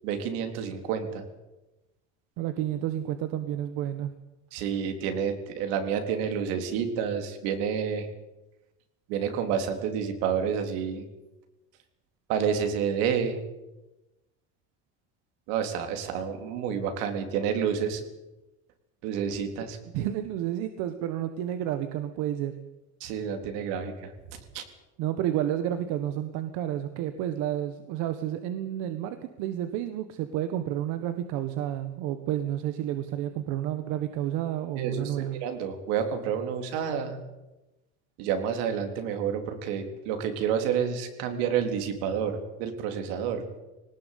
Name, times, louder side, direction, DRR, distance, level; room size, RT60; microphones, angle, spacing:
voice 1, 0.0-1.2 4.5-8.1 9.1-11.1 12.3-13.4 15.5-18.0 19.0-19.8 23.0-24.6 34.8-37.2 38.2-43.5, right 7 dB, 80° right, 6 dB, 3.9 m, -29 dB
voice 2, 2.4-4.1 19.9-22.6 25.0-35.4, right 11 dB, 65° right, 9 dB, 1.6 m, -30 dB
21.0 x 19.0 x 8.5 m, 1.0 s
cardioid pair, 170°, 33 cm